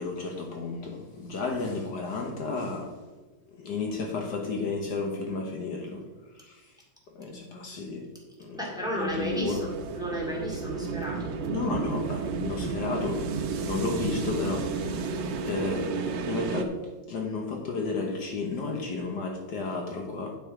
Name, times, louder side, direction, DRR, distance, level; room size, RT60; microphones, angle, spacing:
voice 1, 0.0-2.9 3.5-6.0 6.4-6.7 7.1-8.1 8.4-8.6 9.0-9.7 11.4-13.3 13.7-14.7 15.4-15.9 16.3-16.8 17.1-20.4, left 3 dB, 65° left, 1 dB, 1.7 m, -32 dB
voice 2, 8.5-11.4, right 1 dB, ahead, -3 dB, 2.3 m, -33 dB
sound 1, 9.1-16.6, right 4 dB, 80° right, 1.5 m, -32 dB
9.9 x 5.9 x 4.9 m, 1.2 s
omnidirectional pair, 2.0 m